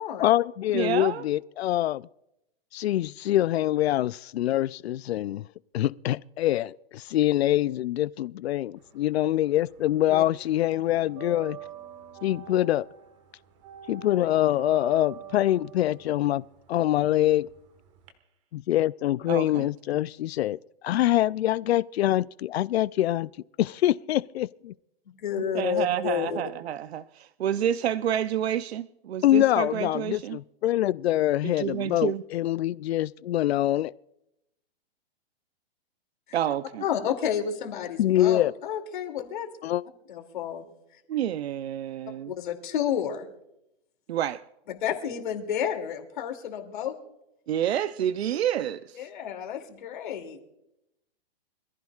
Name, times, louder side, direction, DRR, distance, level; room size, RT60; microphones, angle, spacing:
voice 1, 0.2-2.0 2.7-5.4 5.7-11.6 12.2-12.9 13.9-16.4 16.7-17.5 18.5-20.6 20.8-23.3 23.6-24.7 29.2-33.9 38.0-38.5 39.6-39.8, left 13 dB, 85° left, 0.5 m, -24 dB
voice 2, 0.7-1.2 19.3-19.7 25.5-30.4 31.6-32.2 36.3-36.8 41.1-42.3 44.1-44.4 47.5-49.0, right 10 dB, 85° right, 0.7 m, -29 dB
sound 1, 8.8-9.9 10.2-18.1, right 10 dB, 30° right, 1.5 m, -45 dB
voice 3, 25.2-26.4 36.3-36.4 36.8-39.5 40.1-40.6 40.9-41.0 42.3-43.3 44.7-47.0 48.9-50.4, left 9 dB, 50° left, 2.6 m, -30 dB
26.0 x 15.0 x 2.4 m
hypercardioid pair, 180°, 31 cm